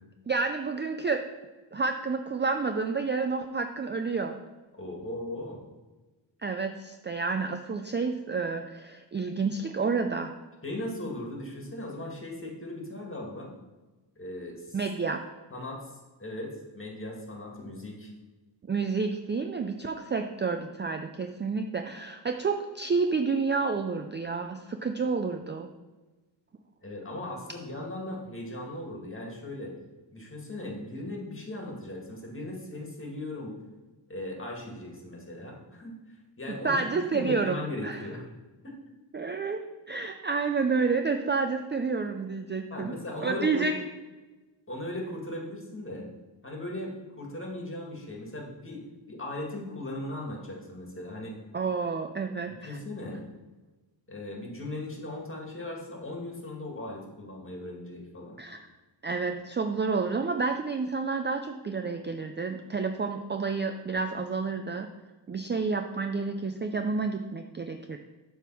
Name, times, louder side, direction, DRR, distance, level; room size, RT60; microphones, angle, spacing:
voice 1, 0.3-1.2 1.7-4.3 6.4-10.3 14.7-15.2 18.7-25.7 36.6-38.1 39.1-42.9 43.2-43.7 51.5-52.8 58.4-58.7 59.0-64.9 65.3-68.0, right 4 dB, 25° right, 6 dB, 0.4 m, -29 dB
voice 2, 4.8-5.6 10.6-13.6 14.2-14.8 15.5-18.1 26.8-29.7 30.1-33.6 34.1-36.9 37.1-38.3 38.6-38.7 42.7-43.7 44.7-46.1 46.4-48.8 49.1-51.4 52.5-53.2 54.1-58.4, left 1 dB, 25° left, -1 dB, 1.9 m, -38 dB
7.2 x 3.6 x 6.1 m, 1.2 s
wide cardioid pair, 85°, 46 cm